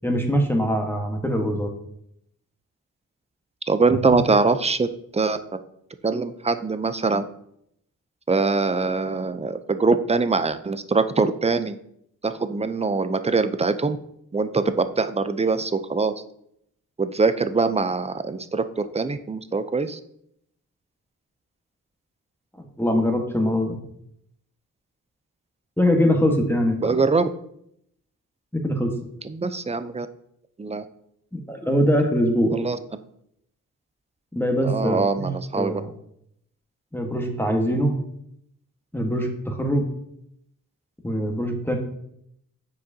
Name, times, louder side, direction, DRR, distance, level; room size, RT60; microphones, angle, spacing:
voice 1, 0.0-1.7 4.0-4.2 22.6-23.8 25.8-26.9 28.5-28.9 31.3-32.5 34.3-35.9 36.9-38.0 38.9-39.9 41.0-41.8, equal, 5° left, 2 dB, 1.3 m, -23 dB
voice 2, 3.7-4.9 5.1-5.4 6.0-7.3 8.3-11.8 12.2-14.0 14.3-16.1 17.0-20.0 26.8-27.3 29.2-30.1 30.6-30.8 32.5-32.8 34.6-35.8, right 4 dB, 20° right, 11 dB, 0.5 m, -23 dB
7.5 x 4.8 x 2.7 m, 0.75 s
cardioid pair, 50°, 35 cm